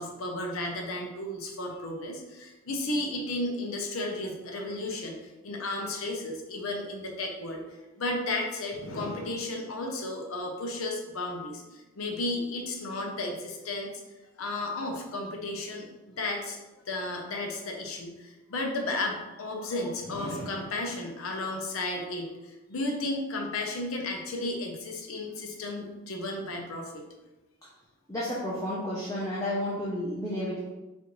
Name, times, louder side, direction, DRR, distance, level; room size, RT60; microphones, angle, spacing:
voice 1, 0.0-7.6 8.0-13.9 14.4-16.6 16.9-27.0, left 2 dB, 85° left, 2 dB, 0.7 m, -33 dB
voice 2, 28.1-30.7, left 1 dB, 15° left, -7 dB, 0.5 m, -32 dB
4.2 x 2.5 x 3.0 m, 1.1 s
head